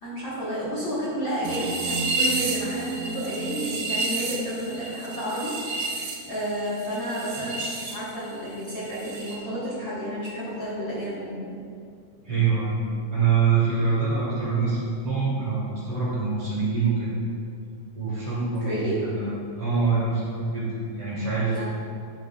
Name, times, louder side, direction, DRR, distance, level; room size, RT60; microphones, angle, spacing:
voice 1, 0.0-6.0 6.3-11.6 18.6-19.0 21.5-21.6, equal, 45° left, -10 dB, 1.8 m, -31 dB
sound 1, 1.4-7.9 8.2-9.4, right 3 dB, 75° right, 1.5 m, -30 dB
voice 2, 12.2-12.8 13.1-14.8 15.0-17.1 18.0-21.6, right 5 dB, 45° right, -8 dB, 2.3 m, -25 dB
10.5 x 7.8 x 2.4 m, 2.3 s
omnidirectional pair, 3.9 m